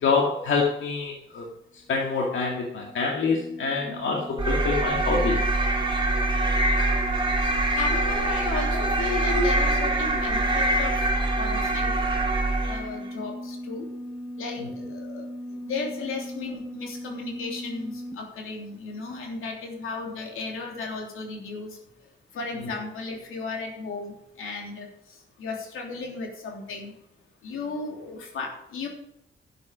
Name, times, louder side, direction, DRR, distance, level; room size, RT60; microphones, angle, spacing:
voice 1, 0.0-1.5 1.9-5.4 8.7-8.8 9.3-9.4, left 4 dB, 70° left, -1 dB, 2.2 m, -26 dB
sound 1, 2.0-18.1, equal, 5° left, 1.3 m, -38 dB
sound 2, 4.4-13.0, right 2 dB, 25° right, 3.0 m, -24 dB
voice 2, 7.8-10.9 11.3-11.9 12.7-13.9 14.4-14.6 14.9-15.3 15.5-21.8 22.3-24.9 25.4-26.9 27.4-28.9, left 4 dB, 90° left, 1 dB, 3.2 m, -35 dB
11.5 x 8.3 x 5.2 m, 0.80 s
cardioid pair, 135°, 21 cm